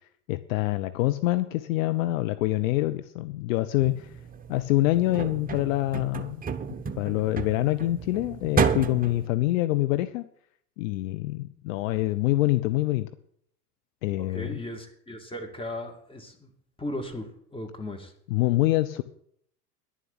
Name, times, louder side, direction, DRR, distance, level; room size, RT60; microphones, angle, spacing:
voice 1, 0.3-4.1 4.5-6.4 7.0-10.2 10.8-13.1 14.0-14.6 18.3-19.0, left 17 dB, 55° left, 11 dB, 0.8 m, -25 dB
sound 1, 3.8-9.3, right 6 dB, 20° right, 1.0 m, -31 dB
voice 2, 14.2-16.5 16.8-18.1, left 1 dB, 10° left, 4 dB, 2.7 m, -37 dB
11.0 x 7.3 x 8.8 m, 0.65 s
figure-of-eight pair, 80°, 46 cm